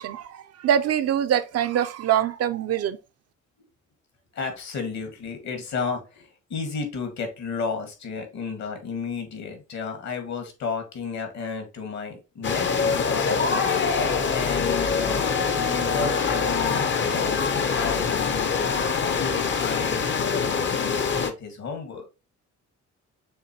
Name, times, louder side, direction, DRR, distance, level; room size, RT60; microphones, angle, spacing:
voice 1, 0.0-3.0, right 10 dB, 55° right, 0.5 m, -24 dB
voice 2, 4.3-13.7 14.3-22.1, left 5 dB, 65° left, 1.7 m, -33 dB
sound 1, 12.4-21.3, left 5 dB, 40° left, 0.7 m, -24 dB
6.5 x 2.6 x 2.9 m
cardioid pair, 90°, 30 cm